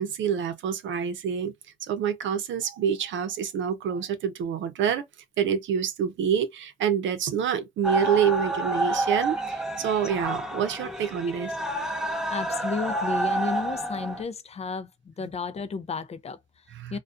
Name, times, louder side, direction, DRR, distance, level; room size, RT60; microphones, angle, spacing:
voice 1, 0.0-1.5 1.9-5.1 5.4-11.5 16.7-17.0, right 8 dB, 70° right, 0.6 m, -27 dB
sound 1, 7.8-14.2, right 2 dB, 5° right, 0.7 m, -29 dB
voice 2, 12.1-17.0, left 5 dB, 35° left, 0.4 m, -33 dB
2.3 x 2.3 x 2.5 m
cardioid pair, 90°, 20 cm